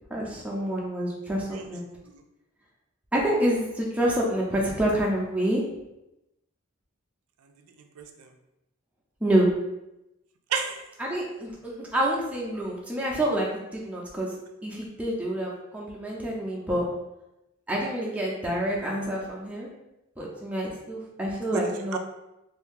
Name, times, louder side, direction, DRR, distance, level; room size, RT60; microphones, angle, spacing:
voice 1, 0.1-1.8 3.1-5.6 9.2-9.5 11.0-14.4 14.6-16.8 17.7-19.7 20.2-22.0, right 1 dB, 5° right, -4 dB, 0.6 m, -27 dB
voice 2, 8.0-8.3 10.5-10.8 21.5-22.0, right 5 dB, 90° right, 5 dB, 0.4 m, -32 dB
2.8 x 2.6 x 3.7 m, 0.91 s
head